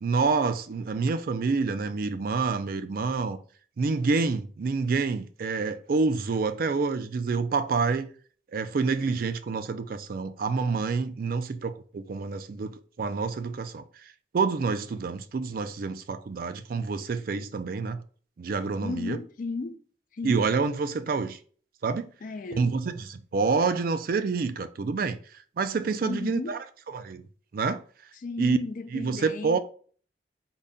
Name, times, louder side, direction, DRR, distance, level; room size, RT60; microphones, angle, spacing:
voice 1, 0.0-3.4 3.8-8.1 8.5-13.8 14.3-18.0 18.4-19.2 20.2-21.4 21.8-22.1 22.5-25.2 25.6-26.6 26.9-27.2 27.5-27.8 28.4-28.6 28.9-29.6, right 4 dB, 50° right, 0.4 m, -27 dB
voice 2, 18.8-19.8 20.1-20.5 22.2-22.7 26.0-26.6 28.1-29.6, left 3 dB, 45° left, 0.4 m, -35 dB
3.8 x 2.2 x 3.6 m
head